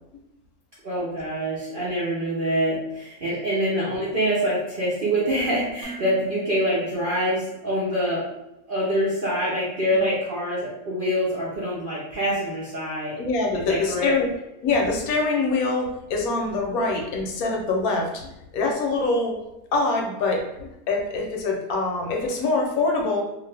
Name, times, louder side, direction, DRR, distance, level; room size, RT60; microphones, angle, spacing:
voice 1, 0.8-8.2 8.7-13.2 13.6-14.1, equal, 55° right, -8 dB, 0.6 m, -25 dB
Dishes pots and pans, 5.8-7.9, right 2 dB, 70° right, 1.0 m, -44 dB
voice 2, 13.2-14.3 14.6-19.3 19.7-23.2, left 3 dB, 75° left, 1 dB, 1.0 m, -24 dB
2.5 x 2.5 x 3.2 m, 0.90 s
omnidirectional pair, 1.7 m